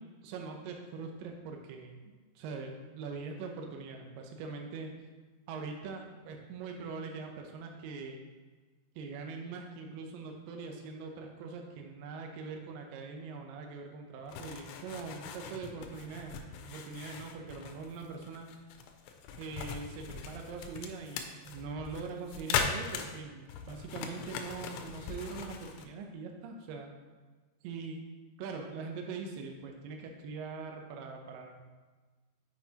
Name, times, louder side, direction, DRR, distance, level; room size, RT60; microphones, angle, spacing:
voice 1, 0.2-4.9 5.5-8.3 9.0-16.4 16.7-18.5 19.4-26.9 27.6-28.0 28.4-31.6, right 4 dB, 85° right, 3 dB, 1.9 m, -42 dB
sound 1, 14.3-25.9, left 6 dB, 85° left, 2.7 m, -39 dB
7.3 x 5.8 x 2.8 m, 1.3 s
omnidirectional pair, 5.0 m